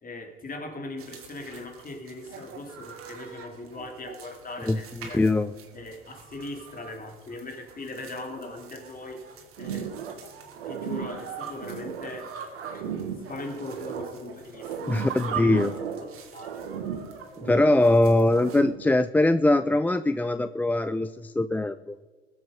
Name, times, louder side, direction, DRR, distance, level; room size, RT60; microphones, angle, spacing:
voice 1, 0.0-5.2 5.7-9.2 9.6-9.9 10.6-16.7, left 2 dB, 30° left, 3 dB, 3.2 m, -40 dB
sound 1, 1.0-18.6, right 7 dB, 45° right, 2.7 m, -43 dB
voice 2, 4.7-5.5 14.9-15.7 17.4-22.0, left 2 dB, 5° left, 13 dB, 0.3 m, -22 dB
sound 2, 9.6-10.3 10.5-12.2 12.5-14.2 14.5-16.2 16.4-18.0 18.3-18.9, right 8 dB, 85° right, 1.4 m, -36 dB
20.5 x 7.9 x 5.2 m, 1.3 s
hypercardioid pair, 75°, 30 cm